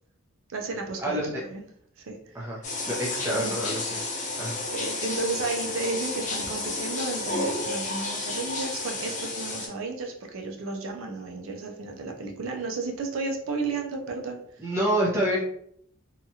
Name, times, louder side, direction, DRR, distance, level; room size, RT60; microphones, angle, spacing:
voice 1, 0.5-1.6 2.0-2.6 3.2-3.5 4.7-14.7, right 3 dB, 75° right, 2 dB, 0.5 m, -33 dB
sound 1, 2.6-9.7, left 2 dB, 35° left, 0.6 m, -31 dB
voice 2, 2.9-4.0 4.4-4.6 14.6-15.4, right 1 dB, 10° right, -4 dB, 0.6 m, -27 dB
2.8 x 2.3 x 2.7 m, 0.69 s
head